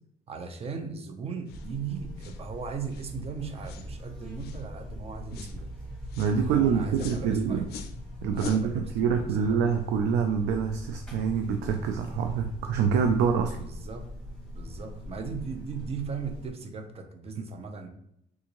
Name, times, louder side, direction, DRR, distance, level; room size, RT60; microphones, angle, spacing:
voice 1, 0.3-5.7 6.4-7.7 8.3-9.6 13.5-14.1 14.5-17.9, right 5 dB, 35° right, 6 dB, 0.6 m, -38 dB
sound 1, 1.5-1.7 2.2-2.4 2.9-3.1 3.6-3.9 4.4-4.7 5.3-5.6 6.1-6.4 7.0-7.2 7.7-8.0 8.3-8.7, left 8 dB, 70° left, 0.4 m, -43 dB
Buzz, 1.5-16.5, equal, 5° left, 1.1 m, -41 dB
voice 2, 6.2-7.7 8.2-13.6, right 6 dB, 80° right, 4 dB, 0.4 m, -26 dB
3.6 x 2.6 x 2.9 m, 0.76 s
cardioid pair, 110°, 17 cm